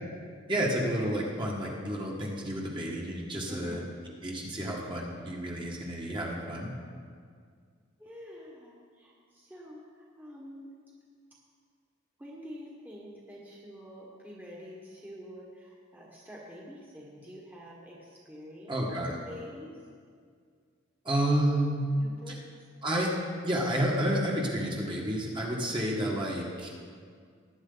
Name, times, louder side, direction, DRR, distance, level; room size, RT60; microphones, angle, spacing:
voice 1, 0.5-6.7 18.7-19.1 21.1-21.8 22.8-23.1 23.4-26.7, right 1 dB, 25° right, -2 dB, 1.7 m, -30 dB
voice 2, 3.5-3.8 8.0-10.7 12.2-18.8 19.0-19.8 21.9-22.4, equal, 10° right, -5 dB, 1.5 m, -47 dB
19.0 x 9.3 x 4.0 m, 2.1 s
head